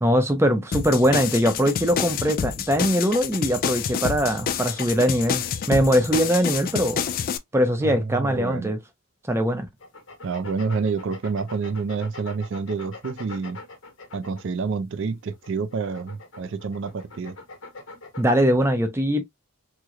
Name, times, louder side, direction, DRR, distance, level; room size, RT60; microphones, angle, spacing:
voice 1, 0.0-7.0 7.5-8.8 9.3-9.7 18.2-19.2, equal, 10° right, 0.5 m, -21 dB
sound 1, 0.7-7.4, left 7 dB, 40° left, 0.3 m, -28 dB
voice 2, 7.8-8.7 10.2-13.6 14.1-17.4, right 5 dB, 60° right, 0.4 m, -28 dB
sound 2, 9.8-14.7 15.3-18.4, left 3 dB, 65° left, 1.0 m, -42 dB
3.0 x 2.0 x 3.6 m
head